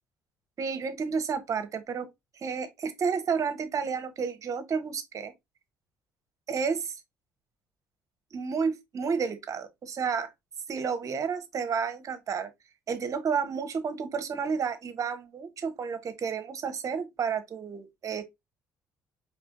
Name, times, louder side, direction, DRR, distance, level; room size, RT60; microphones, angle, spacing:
voice 1, 0.6-2.1 2.3-5.3 6.5-6.9 8.3-10.3 10.7-12.5 12.9-18.2, right 6 dB, 45° right, 1.0 m, -31 dB
4.8 x 3.4 x 2.5 m
hypercardioid pair, 60°, 7 cm